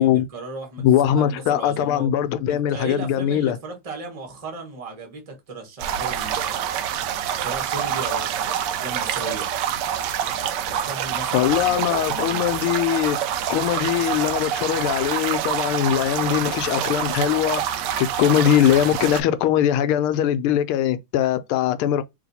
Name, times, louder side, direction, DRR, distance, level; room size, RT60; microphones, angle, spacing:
voice 1, 0.0-2.1 2.5-6.6 7.4-9.5 10.6-12.5, right 3 dB, 20° right, 0.9 m, -36 dB
voice 2, 0.8-3.6 11.3-13.2 13.5-22.0, left 10 dB, 80° left, 1.4 m, -21 dB
sound 1, 5.8-19.2, right 9 dB, 80° right, 0.9 m, -26 dB
3.3 x 3.1 x 4.0 m
omnidirectional pair, 2.4 m